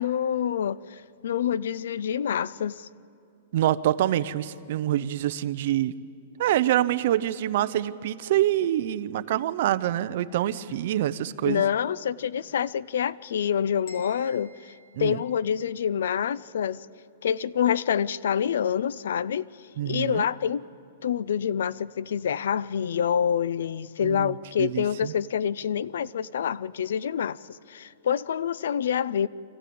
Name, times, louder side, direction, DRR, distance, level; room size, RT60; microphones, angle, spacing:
voice 1, 0.0-2.9 11.4-16.9 17.2-19.5 19.9-20.6 21.0-29.3, left 8 dB, 80° left, 21 dB, 0.4 m, -27 dB
voice 2, 3.5-5.9 6.4-11.6 14.9-15.2 19.8-20.3 24.0-25.1, right 12 dB, 50° right, 14 dB, 0.6 m, -26 dB
sound 1, 13.9-15.9, left 2 dB, 40° left, 4.0 m, -52 dB
25.0 x 15.0 x 8.6 m, 2.8 s
supercardioid pair, 170°, 0 cm